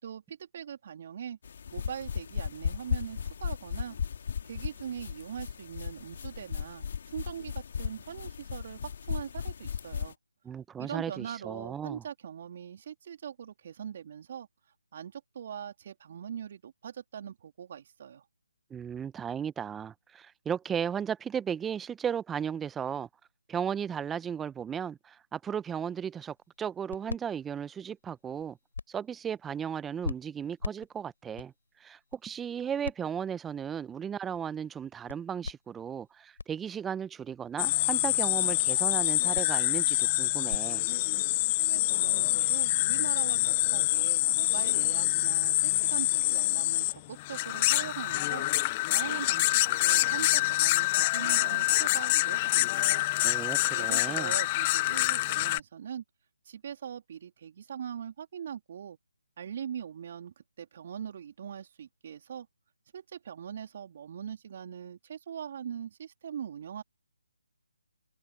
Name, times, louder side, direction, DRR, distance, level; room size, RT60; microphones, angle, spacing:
voice 1, 0.0-1.4 1.7-4.0 4.4-10.2 10.8-14.5 14.9-18.2 41.6-48.5 48.9-53.0 53.7-56.0 56.4-59.0 59.4-62.5 62.9-66.8, right 8 dB, 40° right, 3.2 m, -41 dB
sound 1, 1.4-10.1, left 7 dB, 45° left, 2.2 m, -36 dB
voice 2, 10.4-12.0 18.7-23.1 23.5-28.6 28.9-31.5 31.8-40.8 53.2-54.3, right 8 dB, 10° right, 0.9 m, -35 dB
sound 2, 26.1-40.6, left 4 dB, 65° left, 7.2 m, -44 dB
sound 3, 37.6-55.6, left 19 dB, 25° left, 0.7 m, -26 dB
figure-of-eight pair, 150°, 0 cm